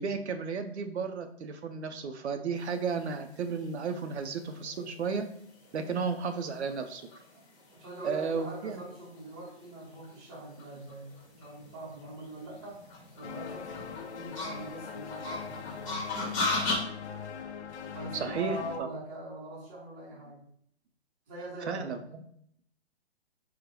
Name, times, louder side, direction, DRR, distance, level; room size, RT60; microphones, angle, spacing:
voice 1, 0.0-5.3 5.7-7.0 8.0-8.8 18.1-18.9 21.7-22.0, right 5 dB, 85° right, 7 dB, 0.6 m, -33 dB
sound 1, 2.9-16.8, left 3 dB, 30° left, 1.0 m, -38 dB
voice 2, 7.4-16.1 17.9-20.5 21.3-22.0, right 1 dB, 15° right, -5 dB, 0.6 m, -43 dB
sound 2, 13.2-18.8, left 7 dB, 80° left, 0.5 m, -41 dB
3.8 x 2.1 x 2.9 m, 0.68 s
hypercardioid pair, 155°, 33 cm